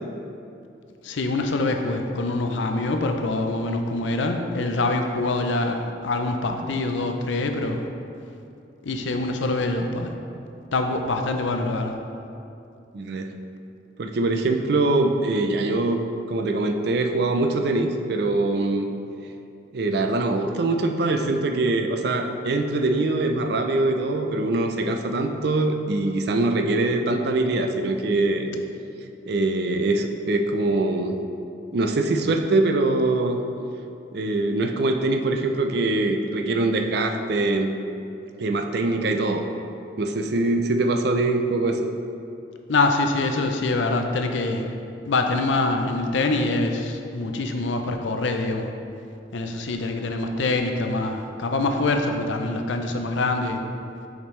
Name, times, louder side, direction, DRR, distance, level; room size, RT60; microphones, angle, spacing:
voice 1, 1.0-7.8 8.8-10.1 10.7-11.9 42.7-44.7 45.0-48.7 49.3-53.6, left 2 dB, 75° left, 4 dB, 0.5 m, -25 dB
voice 2, 12.9-13.3 14.0-16.0 16.3-18.9 19.7-28.5 29.3-31.2 31.7-33.4 34.1-37.7 38.4-39.4 40.0-41.8, right 2 dB, 55° right, 5 dB, 0.4 m, -23 dB
7.2 x 5.2 x 3.2 m, 2.6 s
head